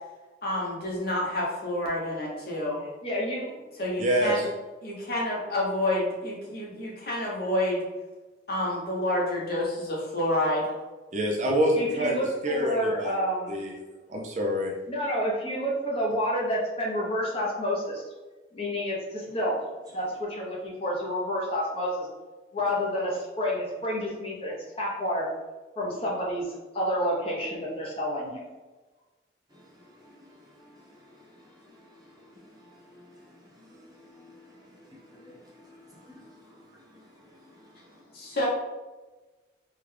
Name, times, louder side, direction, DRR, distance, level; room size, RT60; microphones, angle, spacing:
voice 1, 0.4-2.8 3.8-4.4 4.8-7.8 8.5-10.8 38.1-38.5, left 1 dB, 55° left, 0.9 m, -29 dB
voice 2, 3.0-3.6 11.7-13.5 14.9-18.0 18.5-19.6 19.9-22.1 22.5-25.3 25.8-28.4, equal, 30° left, 0.7 m, -29 dB
voice 3, 4.0-4.5 11.1-13.2 13.5-13.8 14.1-14.7, equal, 40° right, 0.4 m, -26 dB
voice 4, 29.5-38.2, left 1 dB, 20° right, 1.0 m, -54 dB
3.7 x 2.2 x 3.3 m
head